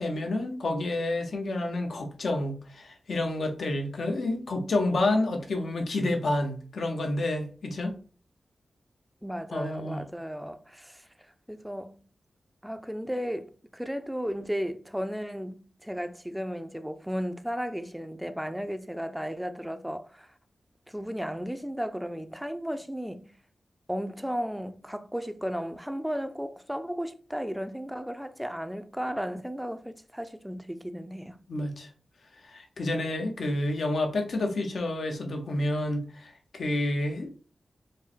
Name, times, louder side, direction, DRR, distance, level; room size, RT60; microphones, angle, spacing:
voice 1, 0.0-7.9 9.5-10.0 31.5-31.9 32.5-37.3, left 2 dB, 80° left, 0.9 m, -29 dB
voice 2, 9.2-11.1 11.5-12.0 12.6-20.3 20.9-23.3 23.9-31.4, equal, 5° right, 0.4 m, -34 dB
4.7 x 2.1 x 4.3 m
wide cardioid pair, 70°, 0 cm